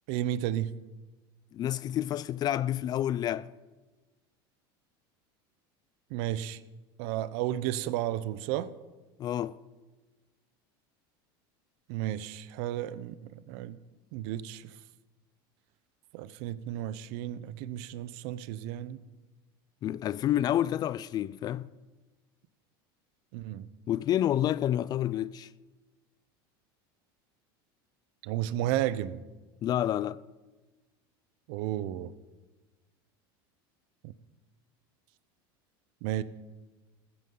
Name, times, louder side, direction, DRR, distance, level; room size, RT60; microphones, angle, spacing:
voice 1, 0.1-0.7 6.1-6.6 7.0-8.7 11.9-13.8 14.1-14.6 16.1-19.0 23.3-23.7 28.2-29.2 31.5-32.1 34.0-34.1 36.0-36.2, right 13 dB, 65° right, 0.7 m, -33 dB
voice 2, 1.5-3.5 9.2-9.6 19.8-21.7 23.9-25.5 29.6-30.2, left 12 dB, 35° left, 0.3 m, -29 dB
15.0 x 13.5 x 3.9 m
supercardioid pair, 125°, 12 cm